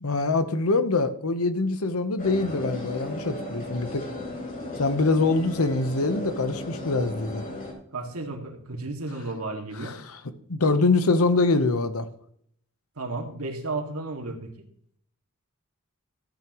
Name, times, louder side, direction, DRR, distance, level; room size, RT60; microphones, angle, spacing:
voice 1, 0.0-4.1 4.8-7.5 9.8-10.2 10.5-12.1, left 3 dB, 75° left, 10 dB, 1.1 m, -24 dB
sound 1, 2.2-7.7, left 1 dB, 40° left, 4.0 m, -36 dB
voice 2, 7.9-9.9 13.0-14.5, right 2 dB, 90° right, 1 dB, 2.3 m, -33 dB
14.5 x 9.2 x 3.1 m, 0.65 s
head